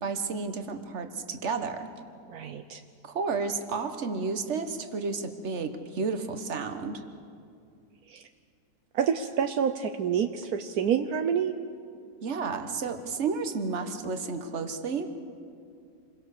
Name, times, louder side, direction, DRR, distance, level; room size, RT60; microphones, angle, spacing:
voice 1, 0.0-1.9 3.0-7.0 12.2-15.1, right 4 dB, 50° right, 8 dB, 1.6 m, -32 dB
voice 2, 2.3-2.8 8.1-8.2 8.9-11.5, right 8 dB, 75° right, 8 dB, 1.3 m, -28 dB
27.0 x 22.5 x 6.7 m, 2.4 s
omnidirectional pair, 1.6 m